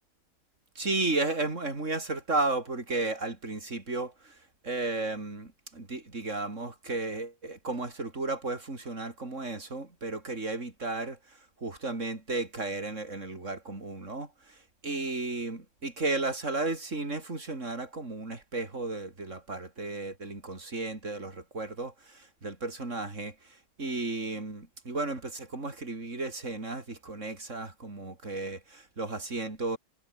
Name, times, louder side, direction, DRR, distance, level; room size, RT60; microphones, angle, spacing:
voice 1, 0.8-4.4 4.6-11.2 11.6-14.6 14.8-23.3 23.8-29.8, right 2 dB, 70° right, 4.4 m, -34 dB
omnidirectional pair, 1.3 m